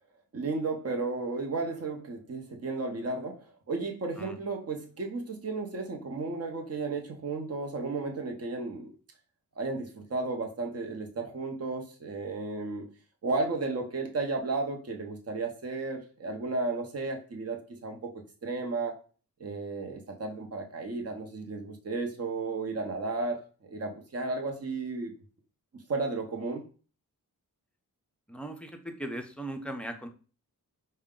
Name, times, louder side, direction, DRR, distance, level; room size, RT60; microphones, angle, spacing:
voice 1, 0.3-8.9 9.6-12.9 13.2-18.0 18.4-19.0 19.4-23.4 23.7-25.1 25.9-26.6, right 3 dB, 45° right, 0.8 m, -33 dB
voice 2, 28.3-30.1, right 1 dB, 5° left, 0.4 m, -38 dB
4.7 x 2.2 x 3.6 m
wide cardioid pair, 155°, 36 cm